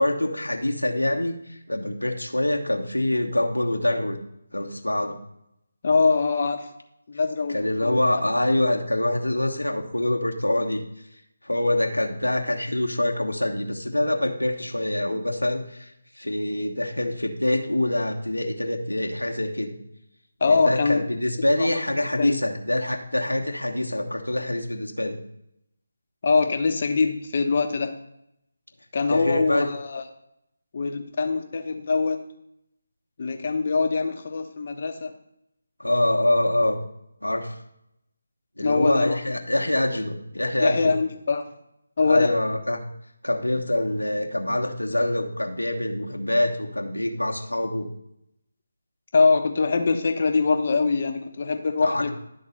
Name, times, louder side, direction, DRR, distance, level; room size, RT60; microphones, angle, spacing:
voice 1, 0.0-4.2 4.5-5.2 7.5-10.8 11.4-19.8 20.5-25.2 29.1-29.7 35.8-36.8 37.2-37.6 38.6-41.0 42.0-42.8 43.2-47.9 51.8-52.1, left 1 dB, 90° left, 3 dB, 1.2 m, -25 dB
voice 2, 5.8-6.7 7.1-8.0 20.4-21.0 21.6-21.8 22.2-22.3 26.2-27.9 28.9-30.0 30.7-32.2 33.2-35.1 38.6-39.2 40.6-41.5 42.0-42.3 49.1-52.1, left 4 dB, 45° left, 5 dB, 1.0 m, -23 dB
11.5 x 3.9 x 5.5 m, 0.79 s
figure-of-eight pair, 155°, 0 cm